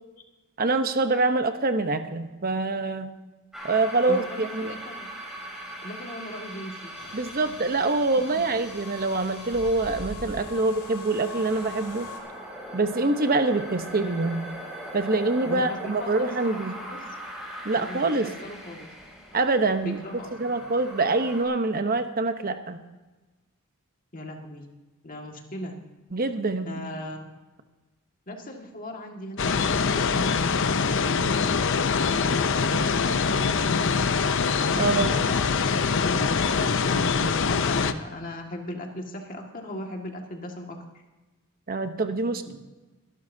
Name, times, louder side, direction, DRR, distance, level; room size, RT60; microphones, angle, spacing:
voice 1, 0.6-3.1 3.6-4.8 7.1-12.1 12.7-14.5 14.9-16.8 17.6-18.3 19.3-20.0 20.4-22.8 26.1-26.8 34.8-35.1 41.7-42.5, right 3 dB, 40° right, 9 dB, 0.9 m, -25 dB
sound 1, 3.5-21.4, equal, ahead, 3.8 m, -40 dB
voice 2, 4.1-5.1 5.8-6.9 7.4-7.5 8.3-8.4 15.4-17.0 17.8-18.9 19.8-20.7 24.1-24.6 25.0-25.8 26.7-27.3 28.3-31.8 32.1-33.7 34.9-40.8 42.5-42.6, left 1 dB, 40° left, 2 dB, 1.9 m, -38 dB
sound 2, 7.0-12.2, left 4 dB, 90° left, 2.0 m, -44 dB
sound 3, 29.4-37.9, left 5 dB, 60° left, 0.6 m, -24 dB
22.0 x 12.0 x 2.7 m, 1.2 s
head